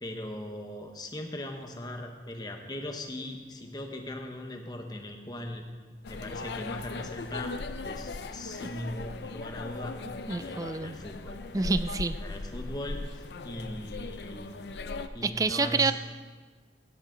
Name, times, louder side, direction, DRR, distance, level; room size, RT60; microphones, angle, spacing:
voice 1, 0.0-5.7 6.1-7.6 7.8-10.0 10.3-11.4 12.2-14.6 15.1-15.9, left 1 dB, 20° left, 4 dB, 1.0 m, -39 dB
sound 1, 6.0-15.1, left 3 dB, 65° left, 0.5 m, -38 dB
voice 2, 10.3-11.0 11.5-12.2 15.2-15.9, right 3 dB, 20° right, 12 dB, 0.3 m, -27 dB
16.5 x 9.3 x 3.9 m, 1.4 s
head